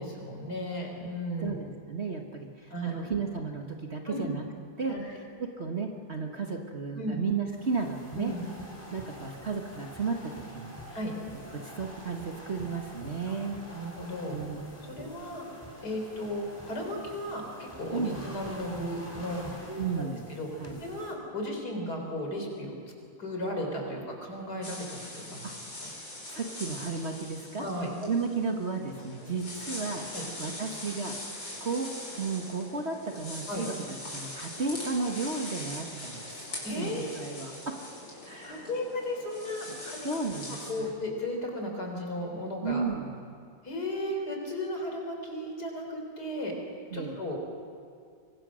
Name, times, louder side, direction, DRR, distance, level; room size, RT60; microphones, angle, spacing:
voice 1, 0.0-1.6 2.7-2.9 4.1-4.3 4.9-5.1 6.9-7.2 8.1-8.4 10.9-11.1 13.3-13.4 13.7-14.4 14.9-15.4 15.8-19.4 20.0-20.5 20.8-22.8 23.2-25.5 27.6-27.9 29.3-29.4 30.1-30.2 33.5-33.7 36.6-37.0 38.4-40.1 40.7-42.8 43.6-46.5 46.9-47.4, left 1 dB, 60° left, 2 dB, 4.8 m, -35 dB
voice 2, 1.4-4.4 4.8-5.0 5.4-8.3 8.9-10.7 11.5-13.6 14.3-14.7 17.9-18.2 19.7-20.3 20.6-20.8 25.4-25.5 26.3-27.6 28.0-30.1 30.4-31.2 31.6-31.9 32.2-33.7 34.1-37.8 38.2-38.7 39.7-40.9 42.6-43.2 46.9-47.2, right 4 dB, 40° right, 2 dB, 1.6 m, -33 dB
sound 1, 7.5-21.1, equal, 5° left, 3.7 m, -46 dB
sound 2, 24.6-40.7, left 1 dB, 75° left, 6.1 m, -42 dB
25.5 x 23.5 x 6.4 m, 2.3 s
omnidirectional pair, 2.0 m